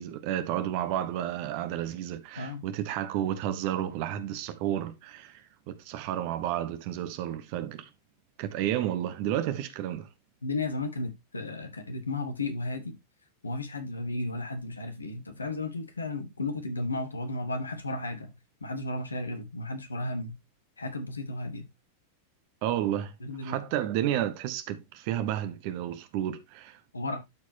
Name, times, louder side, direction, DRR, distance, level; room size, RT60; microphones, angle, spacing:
voice 1, 0.0-7.9 8.4-10.1 22.6-23.1 23.4-26.8, right 11 dB, 45° right, 1.1 m, -31 dB
voice 2, 10.4-12.9 13.4-18.3 18.6-20.4 20.8-21.7 23.2-23.6 26.9-27.2, left 2 dB, 75° left, 1.5 m, -34 dB
12.5 x 4.7 x 2.8 m
figure-of-eight pair, 90°, 0 cm